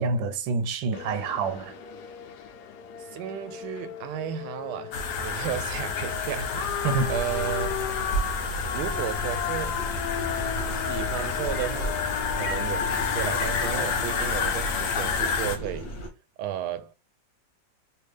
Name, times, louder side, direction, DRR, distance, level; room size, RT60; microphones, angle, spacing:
voice 1, 0.0-1.7 6.8-7.2, right 4 dB, 90° right, 1.3 m, -27 dB
sound 1, 0.9-15.2, left 9 dB, 70° left, 1.1 m, -36 dB
voice 2, 3.1-7.8 8.7-9.8 10.9-12.0 12.4-15.9 16.4-16.9, right 10 dB, 75° right, 1.1 m, -33 dB
sound 2, 4.9-15.6, left 5 dB, 90° left, 1.4 m, -30 dB
sound 3, 6.9-16.1, right 2 dB, 45° left, 0.6 m, -36 dB
3.4 x 2.5 x 3.2 m
omnidirectional pair, 2.0 m